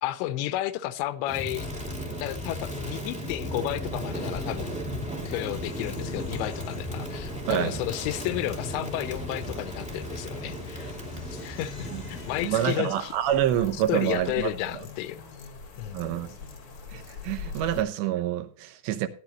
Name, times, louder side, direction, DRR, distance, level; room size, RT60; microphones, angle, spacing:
voice 1, 0.0-1.7 2.2-4.8 5.3-10.9 11.3-13.1 13.9-15.2 15.8-16.1, left 14 dB, 85° left, 2.9 m, -32 dB
Crackle, 1.3-12.8, equal, 10° right, 0.4 m, -35 dB
sound 1, 5.6-17.8, left 5 dB, 65° left, 1.3 m, -45 dB
voice 2, 12.4-14.8 15.9-16.4 16.9-19.1, right 11 dB, 80° right, 3.0 m, -27 dB
15.5 x 10.0 x 3.0 m
omnidirectional pair, 5.2 m